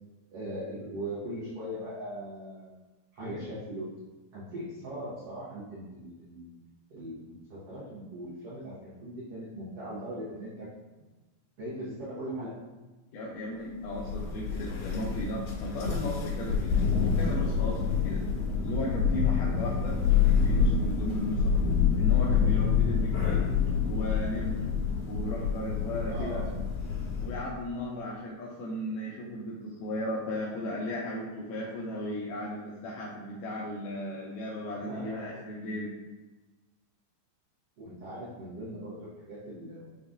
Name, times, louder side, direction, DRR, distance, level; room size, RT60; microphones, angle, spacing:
voice 1, 0.3-2.7 3.1-3.9 4.3-6.5 6.9-10.7 11.0-11.1 11.6-12.5 22.9-23.1 26.1-26.5 34.7-35.4 37.8-40.0, right 1 dB, 90° right, -10 dB, 1.2 m, -39 dB
voice 2, 13.1-16.8 17.0-18.3 18.6-20.0 20.2-21.6 22.0-23.4 23.8-24.6 25.1-26.4 27.2-35.9, left 1 dB, 85° left, -4 dB, 1.9 m, -35 dB
Thunder, 13.9-27.5, left 6 dB, 65° left, 3.2 m, -27 dB
6.7 x 2.3 x 2.6 m, 1.2 s
omnidirectional pair, 4.3 m